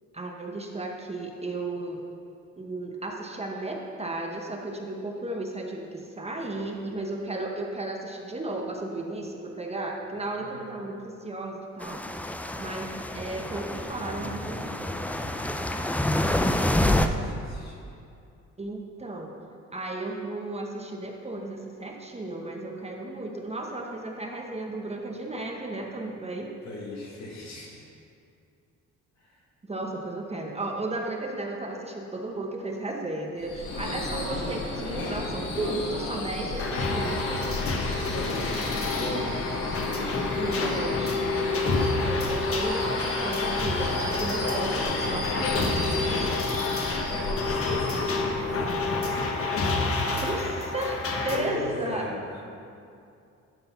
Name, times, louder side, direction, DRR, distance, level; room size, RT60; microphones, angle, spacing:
voice 1, 0.1-2.0 2.6-12.3 12.6-14.9 18.6-19.3 19.7-26.5 29.6-37.5 38.5-38.7 40.3-45.3 45.6-46.1 50.1-52.0, right 2 dB, 20° right, 1 dB, 0.9 m, -34 dB
voice 2, 6.5-7.1 10.4-10.7 13.8-17.9 26.6-27.9 29.2-29.4 37.9-39.5 44.4-46.2 47.0-49.2 51.3-52.4, left 2 dB, 65° left, -3 dB, 2.2 m, -39 dB
sound 1, 11.8-17.1, left 1 dB, 5° left, 0.4 m, -28 dB
Subway metro underground / Screech, 33.4-49.3, left 2 dB, 80° left, 2.1 m, -35 dB
sound 2, 36.6-51.4, left 3 dB, 50° left, 1.1 m, -28 dB
11.5 x 4.0 x 5.6 m, 2.5 s
cardioid pair, 90°, 30 cm